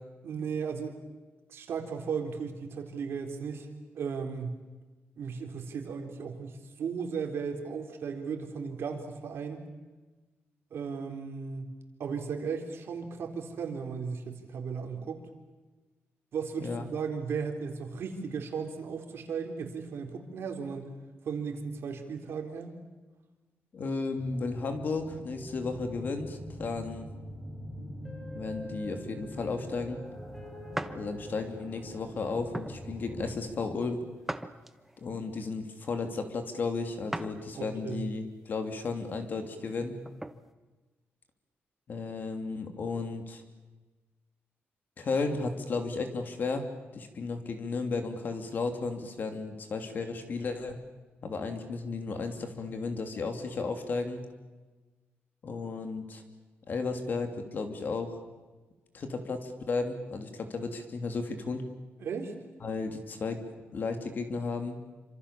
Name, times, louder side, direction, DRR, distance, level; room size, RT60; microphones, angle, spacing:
voice 1, 0.2-1.0 1.5-3.7 3.9-4.6 5.2-9.6 10.7-11.7 12.0-15.2 16.3-20.9 21.2-22.7 37.5-38.1 62.0-62.3, right 6 dB, 65° right, 4 dB, 4.0 m, -36 dB
voice 2, 23.7-27.1 28.3-30.0 30.9-34.0 35.0-40.0 41.9-43.4 45.0-46.6 46.9-50.8 51.2-54.2 55.4-56.2 56.7-58.2 58.9-61.6 62.6-63.4 63.7-64.8, left 4 dB, 45° left, 6 dB, 3.0 m, -34 dB
sound 1, 24.1-33.4, equal, 15° left, 6.6 m, -43 dB
sound 2, 30.8-31.0 31.6-31.8 32.5-32.8 34.3-35.0 37.1-37.4 37.9-38.0 39.7-40.4, right 1 dB, 5° right, 0.9 m, -38 dB
28.0 x 26.0 x 7.2 m, 1.2 s
wide cardioid pair, 180°, 4 cm